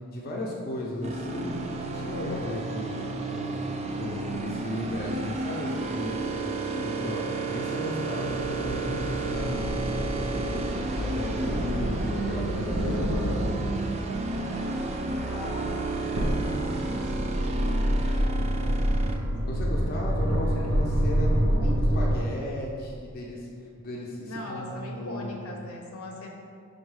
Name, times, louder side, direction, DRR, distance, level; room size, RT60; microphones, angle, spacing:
voice 1, 0.0-1.5 1.9-3.6 4.0-13.7 19.4-23.5 23.8-25.7, left 1 dB, 45° left, -2 dB, 0.5 m, -35 dB
sound 1, 1.0-19.2, right 3 dB, 30° right, 0.3 m, -32 dB
sound 2, 8.3-22.2, equal, 75° right, 0.6 m, -28 dB
voice 2, 15.3-17.1 17.4-19.6 20.5-20.9 21.3-22.3 24.3-26.3, left 1 dB, 85° left, 0 dB, 0.7 m, -41 dB
5.3 x 2.1 x 4.7 m, 2.2 s
head